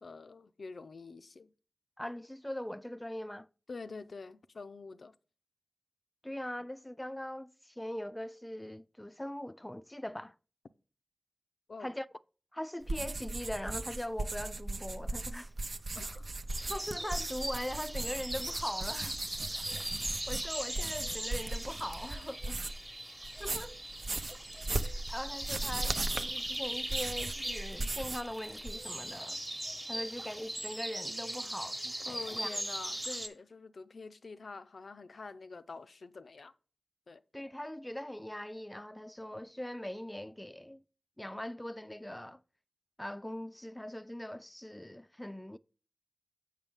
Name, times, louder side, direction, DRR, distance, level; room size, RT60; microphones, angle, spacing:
voice 1, 0.0-1.5 3.7-5.1 11.7-11.9 15.9-16.3 16.6-16.7 22.5-22.6 32.0-36.5 37.1-37.2, left 4 dB, 75° left, 0.4 m, -46 dB
voice 2, 2.0-3.5 6.2-10.4 11.8-12.1 12.5-15.5 16.7-19.2 20.3-22.4 23.4-23.7 25.1-29.4 29.9-32.5 37.3-40.8 41.2-42.4 43.0-45.6, left 1 dB, 10° left, 0.3 m, -41 dB
sound 1, 12.8-22.9 23.2-28.3 28.6-29.1, right 2 dB, 65° right, 0.6 m, -38 dB
sound 2, 16.5-33.3, right 1 dB, 20° right, 1.0 m, -39 dB
7.4 x 6.2 x 3.5 m
cardioid pair, 50°, 0 cm